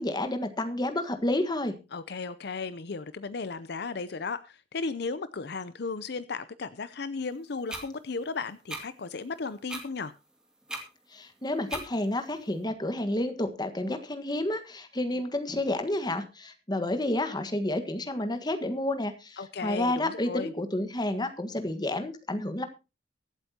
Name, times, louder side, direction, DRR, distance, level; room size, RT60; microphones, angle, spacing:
voice 1, 0.0-1.8 11.1-22.7, left 1 dB, 25° left, 1.5 m, -30 dB
voice 2, 1.9-10.1 19.4-20.5, left 4 dB, 60° left, 0.6 m, -35 dB
sound 1, 7.7-7.8 8.7-8.8 9.7-9.8 10.7-10.8 11.7-11.9, right 1 dB, 5° right, 2.4 m, -36 dB
23.5 x 8.1 x 2.9 m
head